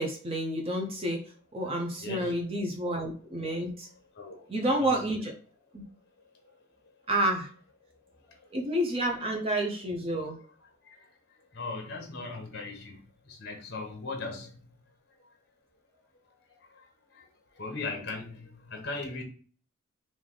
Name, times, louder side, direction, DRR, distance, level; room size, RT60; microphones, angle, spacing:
voice 1, 0.0-3.9 4.5-5.3 5.7-5.8 7.1-7.5 8.5-10.4, right 1 dB, 30° right, 0.6 m, -30 dB
voice 2, 2.0-2.4 4.2-5.2 8.3-8.4 8.7-9.4 11.5-14.6 17.1-17.3 17.6-19.2, left 3 dB, 50° left, 0.9 m, -39 dB
3.3 x 2.6 x 3.7 m
head